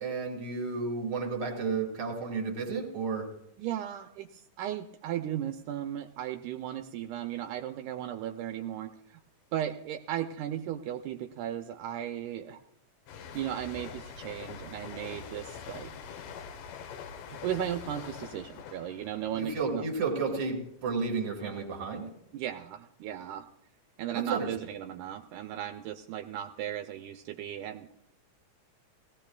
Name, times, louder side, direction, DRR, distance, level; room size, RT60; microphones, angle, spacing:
voice 1, 0.0-3.3 19.3-22.1 24.1-24.5, right 4 dB, 45° right, 2 dB, 2.5 m, -32 dB
voice 2, 3.6-9.2 9.5-12.6 13.3-15.9 17.3-19.8 22.3-23.5 24.0-27.9, right 11 dB, 80° right, 6 dB, 2.1 m, -36 dB
sound 1, 13.1-20.5 20.8-21.1, left 7 dB, 85° left, 2.5 m, -44 dB
19.0 x 16.0 x 2.3 m, 0.78 s
omnidirectional pair, 3.6 m